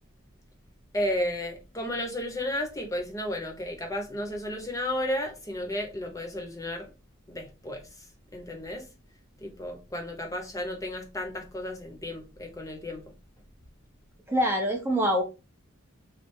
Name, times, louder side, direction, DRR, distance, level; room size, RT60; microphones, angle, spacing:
voice 1, 0.9-6.9 7.3-7.8 8.3-8.9 9.4-13.1, left 1 dB, 15° left, 0.8 m, -33 dB
voice 2, 14.3-15.2, equal, 10° right, 0.6 m, -24 dB
3.2 x 2.5 x 4.4 m
head